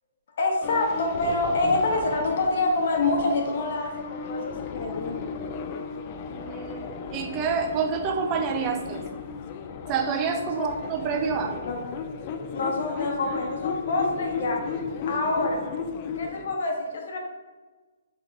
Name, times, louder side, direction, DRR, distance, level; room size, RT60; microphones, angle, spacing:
voice 1, 0.4-5.2 10.5-10.7 11.6-11.8 12.5-14.6 15.1-15.6 16.1-17.2, left 2 dB, 60° left, 0 dB, 1.0 m, -26 dB
sound 1, 0.6-16.5, left 5 dB, 35° left, 0.3 m, -34 dB
voice 2, 6.3-9.0 9.9-11.5, right 6 dB, 25° right, 4 dB, 0.5 m, -28 dB
5.3 x 3.0 x 3.2 m, 1.3 s
hypercardioid pair, 140°, 0 cm